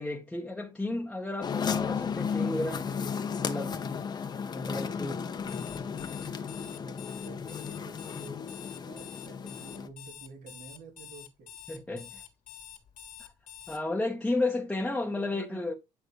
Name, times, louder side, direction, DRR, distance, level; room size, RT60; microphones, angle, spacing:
voice 1, 0.0-2.9 3.4-3.8 4.5-5.1 11.7-12.2 13.2-13.3 13.7-15.7, left 2 dB, 5° left, 1.1 m, -32 dB
sound 1, 1.4-9.9, left 6 dB, 30° left, 0.9 m, -34 dB
voice 2, 4.8-8.4 8.8-11.5 15.0-15.7, right 4 dB, 75° right, 2.7 m, -51 dB
Alarm, 5.4-13.8, left 10 dB, 65° left, 1.9 m, -47 dB
10.0 x 5.8 x 3.1 m
cardioid pair, 165°, 14 cm